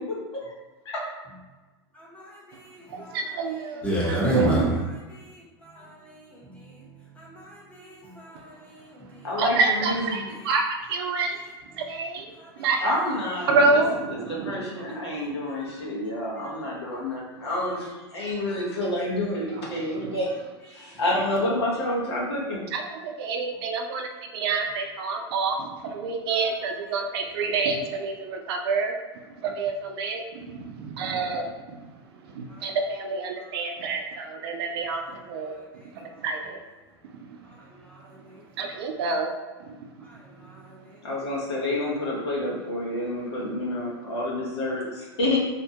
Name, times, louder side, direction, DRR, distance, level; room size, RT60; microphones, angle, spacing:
voice 1, 0.1-0.5 0.8-1.0 9.2-10.2 12.8-20.3 20.7-22.6 41.0-45.4, left 1 dB, 85° left, -4 dB, 0.9 m, -29 dB
voice 2, 1.9-3.3 3.8-4.7 5.1-6.8 7.2-9.3 12.4-12.7 15.5-15.7 20.7-20.9 32.5-32.7 33.4-33.5 35.2-35.3 35.5-35.6 36.1-36.2 37.8-38.4 40.0-40.9, equal, 10° left, -5 dB, 0.9 m, -33 dB
voice 3, 2.9-4.7 9.4-11.4 11.8-12.3 12.6-12.8 13.5-14.6 15.1-15.2 20.0-20.1 22.7-28.9 29.4-31.5 32.3-35.6 35.9-36.6 38.6-39.3 39.7-39.8, right 4 dB, 70° right, 3 dB, 0.4 m, -27 dB
2.6 x 2.2 x 2.8 m, 1.2 s
hypercardioid pair, 105°, 14 cm